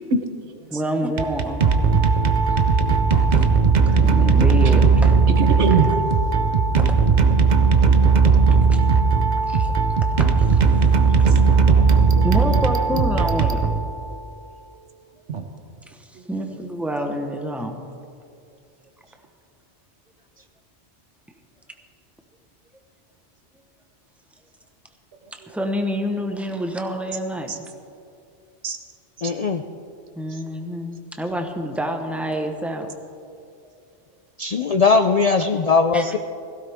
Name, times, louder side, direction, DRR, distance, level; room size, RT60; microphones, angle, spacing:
voice 1, 0.1-0.8 3.9-4.3 5.4-6.0 11.3-11.4 11.7-12.2 12.5-12.6 15.3-15.4 16.1-16.2 16.5-16.6 25.4-25.6 27.5-27.6 28.6-28.8 29.2-29.3, right 4 dB, 80° right, 6 dB, 1.3 m, -25 dB
voice 2, 0.7-1.7 3.9-5.2 8.7-8.8 9.4-9.7 10.0-11.5 12.2-13.8 15.9-17.8 25.3-27.7 30.2-32.9 35.9-36.1, equal, ahead, 3 dB, 1.0 m, -28 dB
sound 1, 1.1-14.3, right 5 dB, 45° right, 0.8 m, -17 dB
voice 3, 29.2-29.6 34.4-36.2, left 4 dB, 55° left, 7 dB, 0.4 m, -19 dB
17.0 x 15.5 x 3.5 m, 2.5 s
omnidirectional pair, 1.2 m